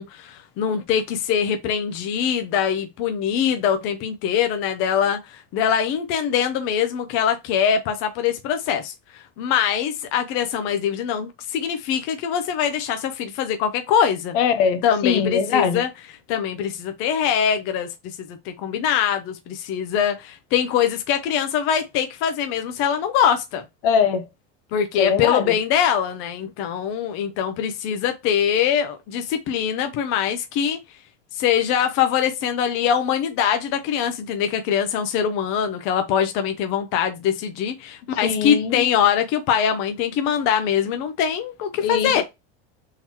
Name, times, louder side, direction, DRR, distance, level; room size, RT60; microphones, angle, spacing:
voice 1, 0.0-14.4 14.8-15.9 16.3-23.6 24.7-30.8 31.3-42.2, left 8 dB, 45° left, 0.7 m, -23 dB
voice 2, 14.3-15.8 23.8-24.3 25.0-25.5 38.2-38.9 41.8-42.2, left 7 dB, 70° left, 0.9 m, -21 dB
3.9 x 2.9 x 4.4 m
cardioid pair, 165°, 29 cm